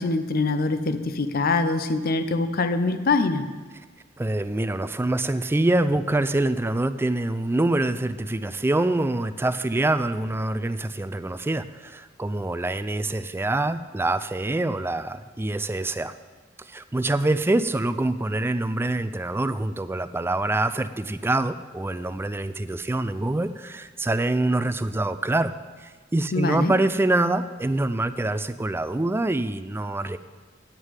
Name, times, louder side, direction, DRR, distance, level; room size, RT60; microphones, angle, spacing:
voice 1, 0.0-3.4 26.3-26.7, left 3 dB, 50° left, 9 dB, 0.6 m, -24 dB
voice 2, 4.2-16.1 16.6-25.5 25.8-30.2, right 2 dB, 10° right, 13 dB, 0.3 m, -25 dB
9.1 x 6.4 x 8.2 m, 1.4 s
head